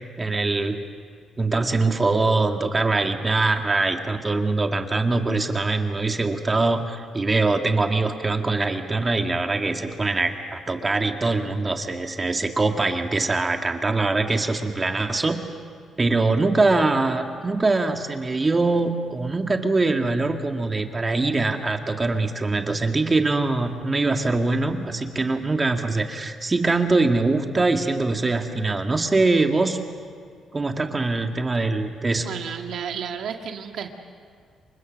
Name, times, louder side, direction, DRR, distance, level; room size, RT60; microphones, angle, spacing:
voice 1, 0.2-0.8 1.4-15.4 16.0-29.8 30.5-32.3, right 3 dB, 25° right, 5 dB, 1.9 m, -23 dB
voice 2, 32.2-33.9, right 7 dB, 70° right, 4 dB, 1.9 m, -32 dB
29.0 x 24.5 x 6.5 m, 2.1 s
cardioid pair, 90°, 0 cm